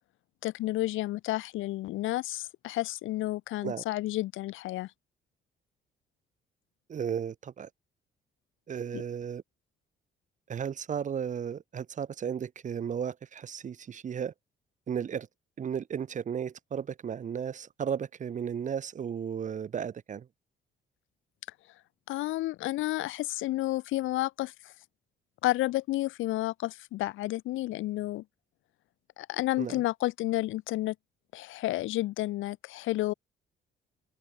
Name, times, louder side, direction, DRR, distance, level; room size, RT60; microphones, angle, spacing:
voice 1, 0.4-4.9 8.9-9.0 22.1-24.7 25.4-28.2 29.2-30.9 31.3-33.1, left 17 dB, 85° left, 0.6 m, -31 dB
voice 2, 6.9-7.7 8.7-9.4 10.5-14.3 14.9-15.3 15.6-20.3 29.6-29.8, right 8 dB, 40° right, 0.6 m, -34 dB
open air
cardioid pair, 90°, 20 cm